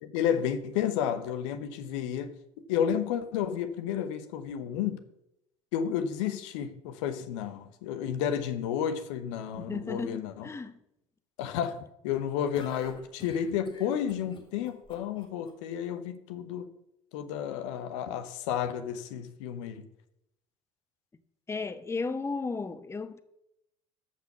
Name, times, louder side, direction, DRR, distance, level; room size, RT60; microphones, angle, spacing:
voice 1, 0.0-2.4 2.7-5.0 5.7-10.5 11.4-16.7 17.1-19.9, left 9 dB, 65° left, 1.0 m, -31 dB
voice 2, 9.6-10.8 21.5-23.2, left 4 dB, 15° left, 0.8 m, -34 dB
sound 1, 12.5-15.5, left 3 dB, 30° left, 3.1 m, -49 dB
13.5 x 5.9 x 6.0 m
figure-of-eight pair, 65°, 17 cm